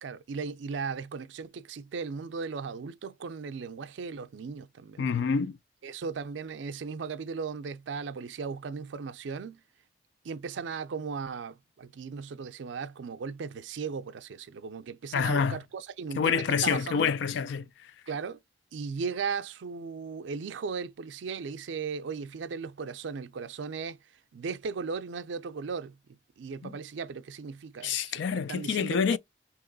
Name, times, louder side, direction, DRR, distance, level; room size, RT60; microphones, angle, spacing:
voice 1, 0.0-5.1 5.8-9.6 10.2-17.2 18.1-18.4 18.7-24.0 24.3-26.0 26.4-29.2, right 5 dB, 80° right, 0.4 m, -37 dB
voice 2, 5.0-5.6 15.1-15.6 16.2-17.7 26.6-26.7 27.8-29.2, left 6 dB, 75° left, 0.3 m, -27 dB
2.9 x 2.9 x 3.8 m
head